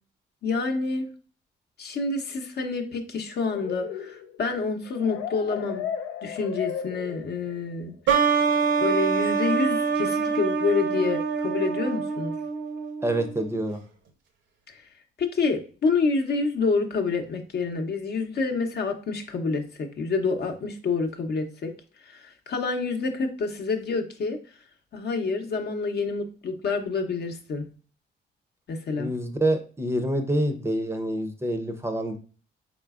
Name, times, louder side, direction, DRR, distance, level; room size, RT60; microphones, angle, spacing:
voice 1, 0.4-1.1 1.8-5.8 6.2-7.9 8.8-12.3 14.7-14.8 15.2-21.7 22.1-24.4 24.9-27.6 28.7-29.1, left 4 dB, 55° left, 4 dB, 0.7 m, -28 dB
sound 1, 3.5-7.6, left 9 dB, 90° left, 0.5 m, -35 dB
sound 2, 8.1-13.5, right 5 dB, 70° right, 0.7 m, -25 dB
voice 2, 13.0-13.8 29.0-32.2, right 1 dB, 10° right, 6 dB, 0.6 m, -27 dB
4.0 x 3.7 x 2.4 m, 0.39 s
cardioid pair, 90°, 20 cm